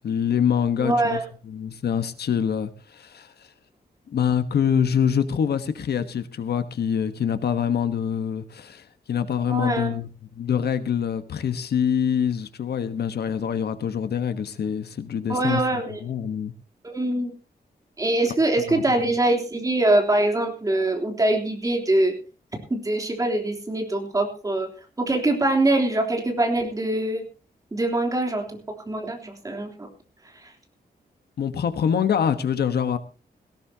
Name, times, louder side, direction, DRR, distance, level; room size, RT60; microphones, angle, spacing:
voice 1, 0.0-3.3 4.1-16.5 18.7-19.1 31.4-33.0, left 8 dB, 75° left, 1.3 m, -25 dB
voice 2, 0.8-1.2 9.5-9.9 15.3-16.0 16.8-17.3 18.0-22.1 22.7-24.7 25.0-27.2 27.7-28.4 28.9-29.9 30.4-30.5, right 2 dB, 20° right, 3.4 m, -23 dB
18.0 x 17.0 x 2.9 m
wide cardioid pair, 175°, 17 cm